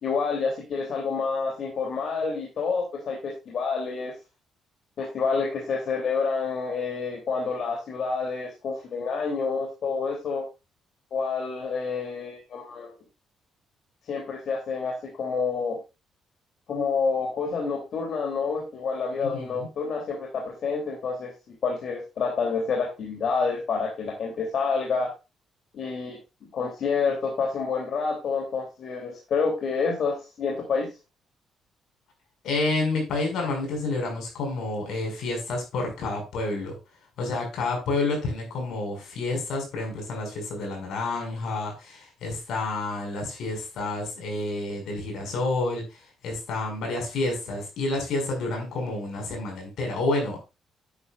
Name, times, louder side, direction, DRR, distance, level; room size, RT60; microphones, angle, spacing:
voice 1, 0.0-4.2 5.0-10.4 11.1-12.9 14.1-15.8 16.7-25.1 25.7-26.2 26.5-30.9, left 5 dB, 60° left, 0 dB, 3.0 m, -28 dB
voice 2, 19.2-19.7 32.4-36.7 37.2-50.4, left 2 dB, 80° left, 2 dB, 5.6 m, -29 dB
10.0 x 9.6 x 2.4 m, 0.27 s
cardioid pair, 90°, 0 cm